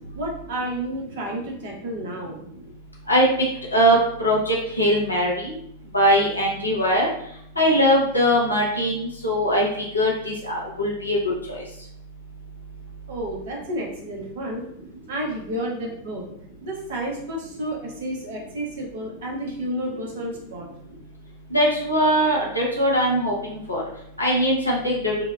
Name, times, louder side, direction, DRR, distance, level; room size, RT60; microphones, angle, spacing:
voice 1, 0.1-2.4 13.1-14.7 15.1-16.2 16.6-20.7, right 1 dB, 55° right, -1 dB, 0.7 m, -31 dB
voice 2, 3.7-5.5 5.9-7.1 7.6-9.7 9.9-11.2 11.5-11.6 21.5-23.3 23.7-23.8 24.2-25.1, equal, 85° left, -3 dB, 0.6 m, -21 dB
2.7 x 2.1 x 2.2 m, 0.73 s
figure-of-eight pair, 90°, 0 cm